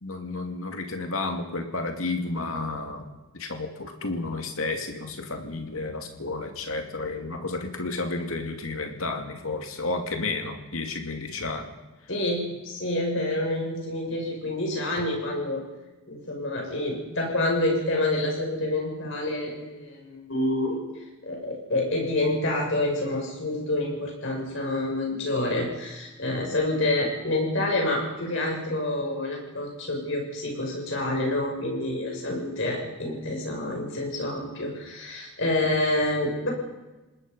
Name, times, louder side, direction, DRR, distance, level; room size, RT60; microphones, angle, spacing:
voice 1, 0.0-11.7 15.0-15.1 32.3-32.4, left 3 dB, 75° left, 4 dB, 2.6 m, -32 dB
voice 2, 12.1-15.6 16.1-20.8 21.2-36.5, left 1 dB, 60° left, 0 dB, 6.7 m, -28 dB
27.5 x 19.5 x 5.5 m, 1.1 s
head